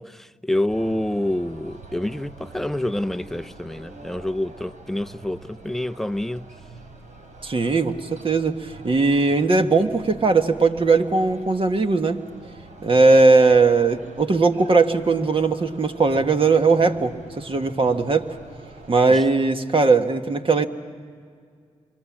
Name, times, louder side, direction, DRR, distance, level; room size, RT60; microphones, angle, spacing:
voice 1, 0.0-6.5 19.1-19.2, left 1 dB, ahead, 0.6 m, -27 dB
sound 1, 0.7-19.3, right 3 dB, 70° right, 3.6 m, -45 dB
voice 2, 7.4-12.2 12.8-18.3 18.9-20.7, right 3 dB, 40° right, 1.6 m, -19 dB
27.5 x 25.0 x 7.5 m
supercardioid pair, 50°, 14 cm